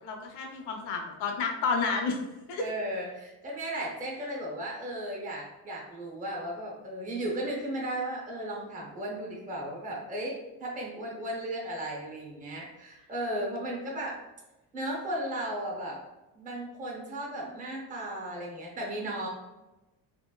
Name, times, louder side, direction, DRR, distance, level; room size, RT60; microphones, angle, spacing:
voice 1, 0.0-2.2 2.5-2.7, left 4 dB, 75° left, 3 dB, 0.7 m, -30 dB
voice 2, 2.6-14.2 14.7-16.0 16.3-19.3, right 1 dB, 20° right, -3 dB, 0.6 m, -35 dB
3.0 x 2.8 x 2.2 m, 1.0 s
cardioid pair, 175°, 41 cm